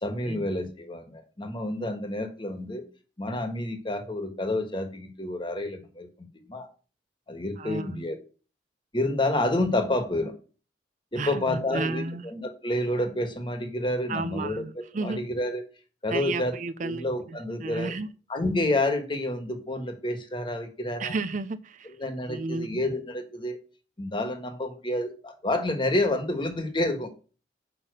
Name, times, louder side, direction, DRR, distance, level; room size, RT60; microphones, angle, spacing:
voice 1, 0.0-2.8 3.2-6.1 6.5-6.7 7.3-8.2 8.9-10.3 11.1-14.7 14.9-15.6 16.0-16.5 16.8-17.9 18.3-21.1 21.8-23.6 24.0-27.1, left 1 dB, 30° left, 1.5 m, -29 dB
voice 2, 7.6-8.0 11.2-12.2 14.1-15.3 16.1-17.0 17.6-18.1 21.0-21.9 22.3-22.8, right 3 dB, 45° right, 0.5 m, -32 dB
6.8 x 5.6 x 6.6 m
head